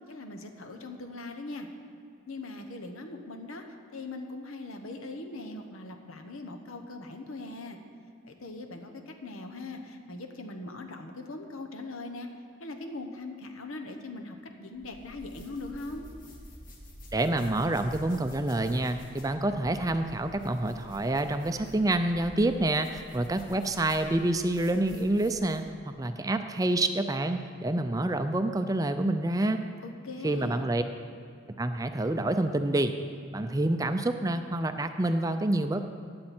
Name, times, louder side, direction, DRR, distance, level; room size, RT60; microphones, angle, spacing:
voice 1, 0.1-1.7 2.3-7.8 8.2-12.3 12.6-16.1 29.8-30.7, left 2 dB, 90° left, 5 dB, 1.2 m, -40 dB
sound 1, 14.8-25.7, equal, 40° left, 1.7 m, -49 dB
voice 2, 17.1-29.6 30.2-30.8 31.6-32.9 33.3-35.8, right 1 dB, 15° right, 8 dB, 0.4 m, -27 dB
15.5 x 9.7 x 4.4 m, 2.4 s
head